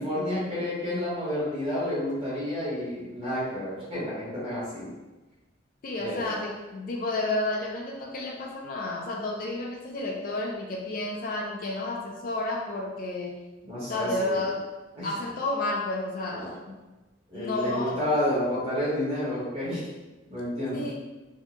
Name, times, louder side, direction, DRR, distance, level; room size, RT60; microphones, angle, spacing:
voice 1, 0.0-4.9 6.0-6.3 13.6-14.4 14.9-15.1 16.3-16.5 17.3-19.9 20.3-20.9, left 1 dB, 30° right, -9 dB, 1.4 m, -30 dB
voice 2, 5.8-13.4 13.9-14.7 15.0-16.8 17.3-18.1 20.7-21.0, left 2 dB, 45° left, 0 dB, 0.4 m, -31 dB
4.3 x 2.7 x 2.4 m, 1.1 s
head